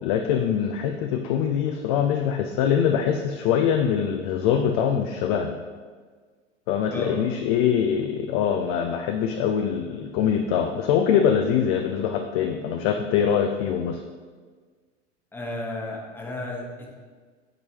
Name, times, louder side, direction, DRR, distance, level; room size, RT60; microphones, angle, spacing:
voice 1, 0.0-5.5 6.7-14.0, left 8 dB, 35° left, 4 dB, 0.4 m, -23 dB
voice 2, 6.9-7.2 15.3-17.0, left 2 dB, 5° left, -2 dB, 1.0 m, -33 dB
7.5 x 4.6 x 2.8 m, 1.5 s
figure-of-eight pair, 85°, 36 cm